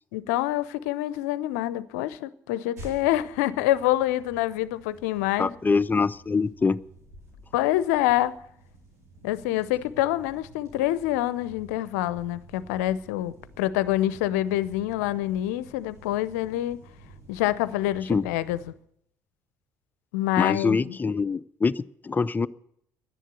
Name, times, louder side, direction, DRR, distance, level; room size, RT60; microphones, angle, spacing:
voice 1, 0.1-5.5 7.5-8.3 9.2-16.8 17.3-18.6 20.1-21.0, left 14 dB, 75° left, 0.6 m, -26 dB
sound 1, 2.8-18.7, right 2 dB, 85° right, 5.4 m, -50 dB
voice 2, 5.4-6.8 18.1-18.2 20.4-22.5, left 4 dB, 20° left, 0.5 m, -24 dB
11.5 x 10.0 x 9.3 m
hypercardioid pair, 55°, 9 cm